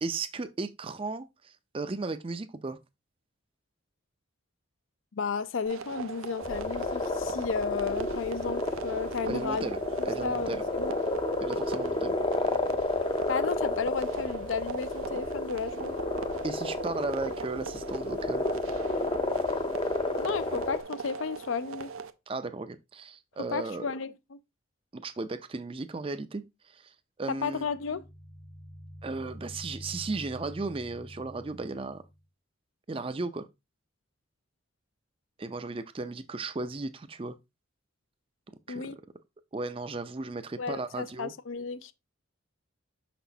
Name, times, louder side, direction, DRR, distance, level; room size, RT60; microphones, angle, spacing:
voice 1, 0.0-2.8 9.3-9.8 10.0-10.6 11.4-12.2 16.4-18.4 22.3-23.9 24.9-26.4 26.7-26.9 27.2-27.7 29.0-32.0 32.9-33.5 35.4-37.3 38.7-38.9 39.5-41.3, right 3 dB, 25° right, 0.4 m, -35 dB
voice 2, 5.1-9.7 10.2-11.0 13.3-16.0 20.1-21.9 23.4-24.4 27.3-28.0 38.7-39.0 40.6-41.9, left 5 dB, 75° left, 0.5 m, -33 dB
sound 1, 5.7-22.1, right 5 dB, 85° right, 0.6 m, -41 dB
sound 2, 6.4-20.8, left 2 dB, 25° left, 0.5 m, -31 dB
sound 3, 27.6-32.2, equal, 55° left, 1.1 m, -46 dB
6.1 x 5.9 x 2.7 m
head